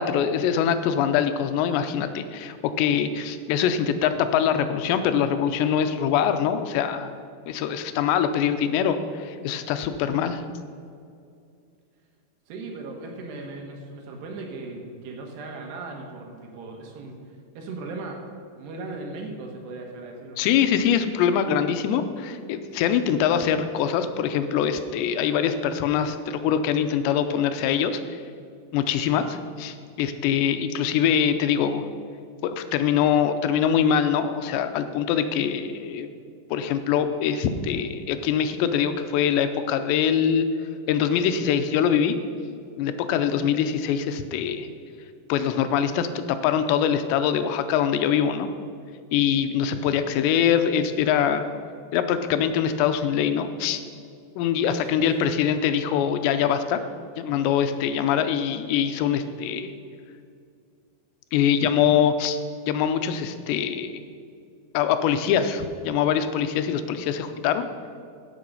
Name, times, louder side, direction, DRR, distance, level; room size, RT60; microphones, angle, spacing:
voice 1, 0.0-7.1 7.5-10.4 20.4-28.0 28.7-31.8 32.4-36.1 36.5-40.5 40.9-42.2 42.8-44.7 45.3-48.5 49.1-51.5 51.9-53.8 54.4-56.8 57.2-59.7 61.3-62.4 62.7-64.0 64.7-67.7, left 8 dB, 90° left, 9 dB, 2.9 m, -23 dB
voice 2, 12.5-18.2 18.6-20.5 54.8-55.4, right 3 dB, 75° right, 2 dB, 3.5 m, -38 dB
15.5 x 6.6 x 5.5 m, 2.4 s
omnidirectional pair, 4.9 m